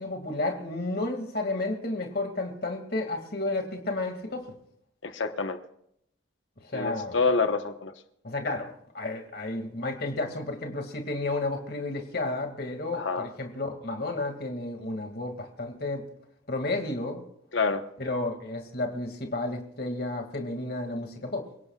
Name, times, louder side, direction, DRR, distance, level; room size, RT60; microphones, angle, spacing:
voice 1, 0.0-4.5 6.6-7.2 8.2-16.1 16.5-17.2 18.0-21.5, left 2 dB, 55° left, 4 dB, 2.3 m, -32 dB
voice 2, 5.0-5.6 6.7-7.9 12.9-13.3 17.5-17.8, left 4 dB, 80° left, 8 dB, 1.2 m, -27 dB
28.0 x 17.5 x 2.4 m, 0.72 s
head